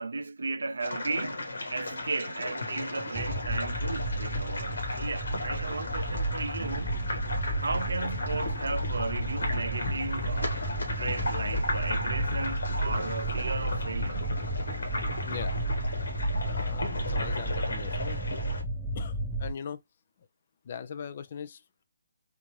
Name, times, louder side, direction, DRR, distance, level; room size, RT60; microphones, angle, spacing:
voice 1, 0.0-1.4 1.7-7.0 7.6-10.7 11.0-14.3, right 3 dB, 70° right, 0.5 m, -35 dB
sound 1, 0.8-18.6, left 2 dB, 75° left, 1.5 m, -35 dB
sound 2, 3.2-19.5, right 1 dB, 10° right, 0.5 m, -32 dB
voice 2, 15.2-15.6 16.3-18.2 18.9-19.8 20.6-21.8, left 7 dB, 45° left, 0.5 m, -40 dB
3.8 x 2.5 x 3.1 m
figure-of-eight pair, 150°, 0 cm